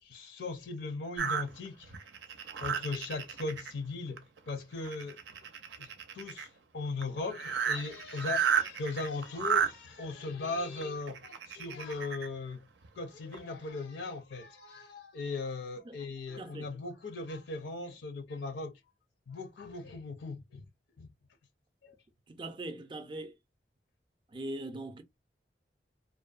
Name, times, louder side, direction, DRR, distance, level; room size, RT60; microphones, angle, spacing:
voice 1, 0.0-1.9 2.6-5.2 5.8-5.9 6.1-6.5 6.7-12.7 13.0-18.8 19.3-20.7 21.0-21.1 21.8-21.9, left 3 dB, 80° left, 0.6 m, -38 dB
sound 1, 1.2-3.7 4.2-4.5 4.8-6.5 7.0-7.1 7.3-9.7 10.7-12.3 12.8-12.9 13.3-13.4, right 7 dB, 80° right, 0.5 m, -32 dB
voice 2, 16.4-16.7 22.3-23.3 24.3-25.0, right 2 dB, 25° right, 0.4 m, -41 dB
2.6 x 2.1 x 2.3 m
head